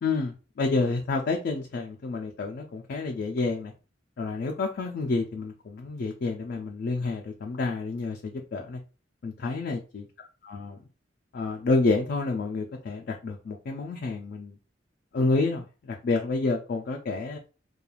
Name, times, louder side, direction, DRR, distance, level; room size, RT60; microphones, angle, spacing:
voice 1, 0.0-3.7 4.2-8.8 9.2-10.0 10.4-10.8 11.3-14.6 15.1-17.4, left 3 dB, 55° left, 0.3 m, -29 dB
3.0 x 2.3 x 2.3 m
head